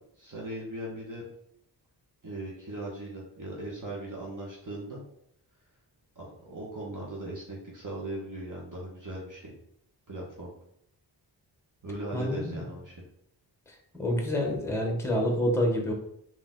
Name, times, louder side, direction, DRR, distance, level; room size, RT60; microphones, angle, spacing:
voice 1, 0.2-1.2 2.2-5.0 6.1-9.6 10.1-10.5 11.8-13.0, right 1 dB, 45° right, -4 dB, 1.3 m, -38 dB
voice 2, 12.1-12.7 14.0-15.9, equal, 5° left, 2 dB, 1.0 m, -27 dB
4.0 x 2.9 x 3.7 m, 0.72 s
wide cardioid pair, 80°, 43 cm